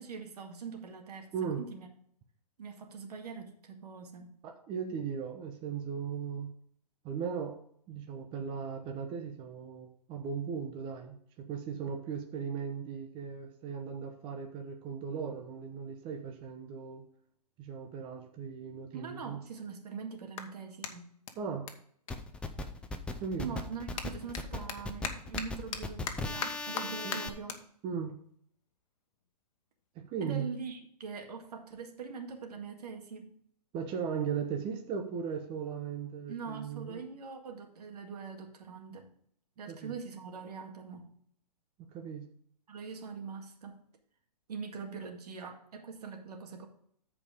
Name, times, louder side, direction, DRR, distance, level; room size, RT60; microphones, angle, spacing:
voice 1, 0.0-1.3 1.6-1.9 2.6-4.3 18.9-21.1 23.4-27.6 30.2-33.3 36.3-39.1 39.6-41.1 42.7-43.8 44.5-46.7, right 5 dB, 70° right, 3 dB, 2.0 m, -43 dB
voice 2, 4.4-6.5 7.0-7.6 7.9-17.0 17.6-19.4 21.4-21.7 23.2-23.6 27.0-27.2 27.8-28.2 29.9-30.5 33.7-37.0 39.7-39.9 41.8-42.2, right 6 dB, 25° right, 3 dB, 1.0 m, -37 dB
Clapping, 19.5-23.1 23.4-30.0, left 7 dB, 55° left, 1.3 m, -43 dB
sound 1, 22.1-27.3, left 2 dB, 5° left, 0.5 m, -38 dB
13.5 x 4.9 x 3.6 m, 0.64 s
hypercardioid pair, 140°, 21 cm